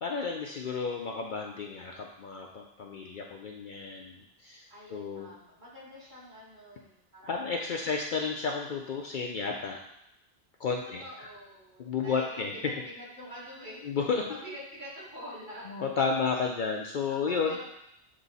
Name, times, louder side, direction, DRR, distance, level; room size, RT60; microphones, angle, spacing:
voice 1, 0.0-4.6 4.9-5.3 7.3-9.8 10.6-11.3 11.8-12.5 13.8-14.2 15.7-17.6, left 5 dB, 60° left, 1 dB, 0.6 m, -32 dB
voice 2, 4.7-7.4 7.7-8.2 10.8-13.8 14.4-15.6 17.1-17.6, equal, 45° right, -8 dB, 2.2 m, -46 dB
7.6 x 3.1 x 4.0 m, 0.81 s
omnidirectional pair, 1.1 m